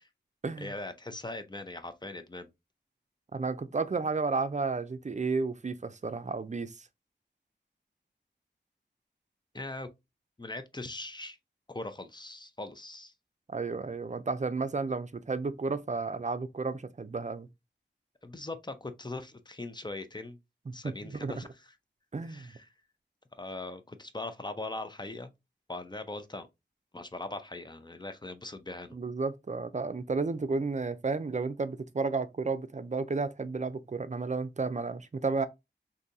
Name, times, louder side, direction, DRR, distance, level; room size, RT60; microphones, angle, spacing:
voice 1, 0.6-2.5 9.5-9.9 10.4-11.4 11.7-13.1 18.2-20.4 20.7-21.7 22.2-22.7 23.4-25.3 25.7-26.5 26.9-29.0, left 2 dB, 25° left, 0.5 m, -40 dB
voice 2, 3.3-6.9 13.5-17.5 20.7-21.3 22.1-22.5 28.9-35.5, right 4 dB, 40° right, 0.4 m, -32 dB
3.8 x 2.7 x 2.6 m
wide cardioid pair, 60°, 19 cm